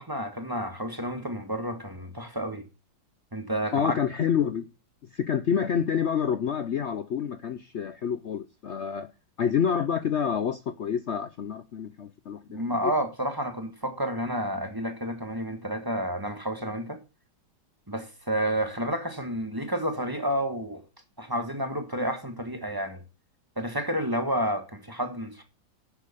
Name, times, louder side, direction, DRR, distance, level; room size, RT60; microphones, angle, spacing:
voice 1, 0.0-2.6 3.3-3.9 12.5-17.0 17.9-20.8 21.2-23.0 23.6-25.4, equal, 15° right, 1.3 m, -30 dB
voice 2, 3.7-4.7 5.1-9.1 9.4-12.9, left 7 dB, 85° left, 0.6 m, -28 dB
9.8 x 6.7 x 6.8 m
omnidirectional pair, 2.0 m